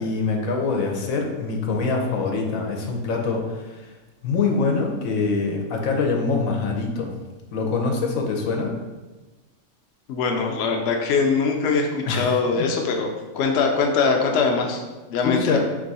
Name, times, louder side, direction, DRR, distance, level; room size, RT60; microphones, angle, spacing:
voice 1, 0.0-3.9 4.2-7.1 7.5-8.7 12.0-12.6 15.2-15.6, left 4 dB, 85° left, 1 dB, 1.1 m, -24 dB
voice 2, 10.1-14.8 15.1-15.6, left 4 dB, 65° left, 2 dB, 0.8 m, -22 dB
3.6 x 3.0 x 4.0 m, 1.2 s
omnidirectional pair, 1.4 m